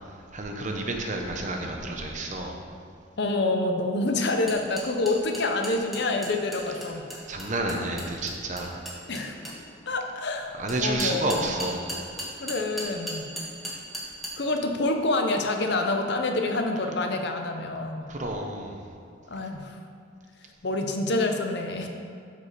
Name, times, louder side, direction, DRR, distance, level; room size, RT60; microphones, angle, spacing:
voice 1, 0.1-2.6 7.3-8.8 10.6-11.9 18.1-18.8, right 2 dB, 40° right, 2 dB, 0.9 m, -30 dB
voice 2, 3.2-7.1 9.1-9.3 9.9-11.5 12.4-13.3 14.4-18.1 19.3-19.8 20.6-21.9, left 2 dB, 60° left, 4 dB, 0.7 m, -27 dB
sound 1, 4.5-9.6 10.7-14.3, right 1 dB, ahead, 1.4 m, -36 dB
13.0 x 4.9 x 4.2 m, 2.4 s
head